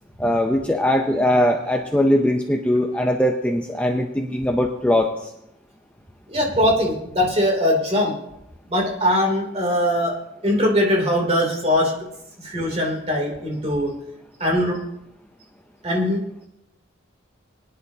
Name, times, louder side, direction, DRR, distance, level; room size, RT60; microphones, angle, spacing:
voice 1, 0.2-5.3, left 1 dB, 5° left, 2 dB, 0.6 m, -20 dB
voice 2, 6.3-8.1 8.7-10.1 10.4-11.9 12.4-13.9 14.4-14.8 15.8-16.2, left 1 dB, 30° right, 0 dB, 2.9 m, -21 dB
21.5 x 10.5 x 2.8 m, 0.83 s
head